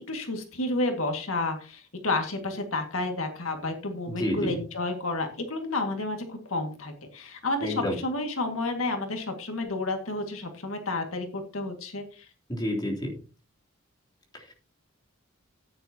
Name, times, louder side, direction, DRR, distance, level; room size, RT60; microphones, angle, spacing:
voice 1, 0.1-12.3, left 2 dB, 75° left, 4 dB, 2.0 m, -31 dB
voice 2, 4.1-4.5 7.6-8.0 12.5-13.1 14.3-14.5, left 1 dB, 20° left, -1 dB, 3.3 m, -29 dB
15.0 x 9.6 x 2.9 m, 0.36 s
head